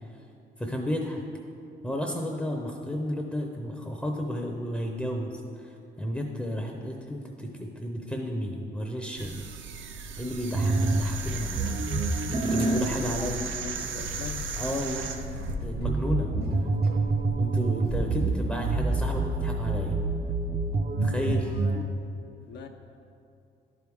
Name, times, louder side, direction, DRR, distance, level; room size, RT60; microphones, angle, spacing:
voice 1, 0.6-1.2 1.8-5.3 5.6-9.4 10.2-11.6 12.4-13.4 14.5-15.1 15.6-16.3 17.3-20.0 21.0-21.6, equal, 5° left, 1 dB, 0.6 m, -32 dB
sound 1, 9.2-15.5, right 6 dB, 75° right, 0.6 m, -37 dB
sound 2, 10.6-21.8, right 2 dB, 35° right, 0.6 m, -28 dB
sound 3, 12.4-12.8 14.5-18.0 18.7-18.8, right 1 dB, 55° right, 1.2 m, -43 dB
voice 2, 12.8-14.5 22.5-22.7, left 4 dB, 60° left, 3 dB, 0.5 m, -41 dB
11.0 x 4.7 x 3.5 m, 2.6 s
cardioid pair, 90°, 20 cm